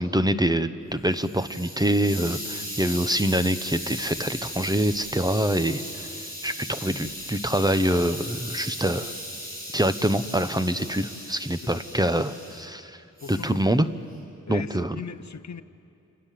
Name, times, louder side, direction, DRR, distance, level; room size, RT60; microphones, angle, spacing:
voice 1, 0.0-5.8 6.4-9.1 9.7-13.0 13.3-13.9 14.5-15.0, right 1 dB, 15° right, 10 dB, 0.9 m, -25 dB
Hiss, 0.9-12.6 13.2-13.6, equal, 30° right, 7.2 m, -37 dB
voice 2, 13.2-13.6 14.5-15.6, left 5 dB, 60° left, 12 dB, 0.8 m, -38 dB
28.0 x 27.5 x 7.6 m, 2.6 s
wide cardioid pair, 80°, 31 cm